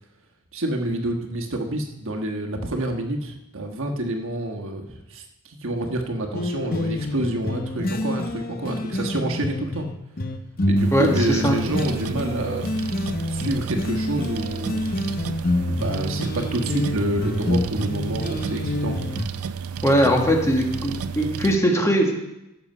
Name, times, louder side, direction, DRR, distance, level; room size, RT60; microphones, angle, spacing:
voice 1, 0.5-9.9 10.7-12.7 13.3-14.9 15.7-19.1, right 1 dB, 60° right, 2 dB, 1.4 m, -28 dB
sound 1, 6.3-19.2, left 1 dB, 40° left, 0.9 m, -27 dB
sound 2, 10.8-21.6, right 6 dB, 75° right, 0.5 m, -32 dB
voice 2, 10.9-11.5 19.8-22.1, equal, 15° left, 2 dB, 1.5 m, -20 dB
15.0 x 6.8 x 5.6 m, 0.92 s
head